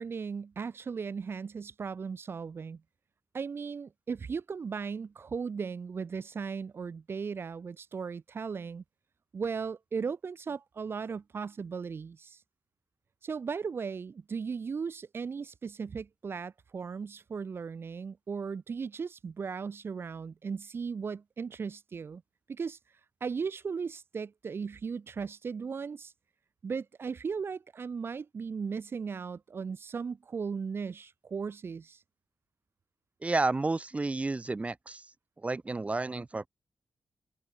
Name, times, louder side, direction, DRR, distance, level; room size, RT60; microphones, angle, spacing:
voice 1, 0.0-2.8 3.3-8.8 9.3-12.4 13.2-22.2 22.5-22.8 23.2-26.1 26.6-32.0, right 5 dB, 55° right, 2.9 m, -37 dB
voice 2, 33.2-35.1 35.4-36.5, right 3 dB, 30° right, 1.8 m, -31 dB
cardioid pair, 70°, 5 cm